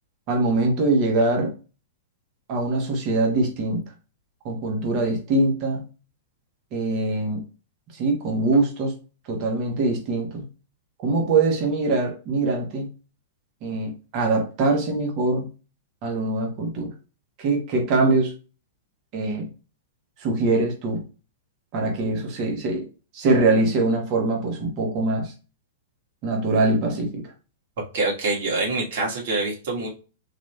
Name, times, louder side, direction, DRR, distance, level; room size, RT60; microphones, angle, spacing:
voice 1, 0.3-1.5 2.5-3.8 4.4-5.8 6.7-7.4 7.9-8.9 9.3-10.4 11.0-12.9 13.6-15.5 16.0-16.9 17.4-18.3 19.1-19.5 20.2-21.0 21.7-22.9 23.1-25.3 26.2-27.2, right 2 dB, 40° right, 1 dB, 1.4 m, -23 dB
voice 2, 27.9-29.9, right 3 dB, 65° right, -2 dB, 2.1 m, -25 dB
4.0 x 2.9 x 3.2 m, 0.34 s
hypercardioid pair, 140°, 0 cm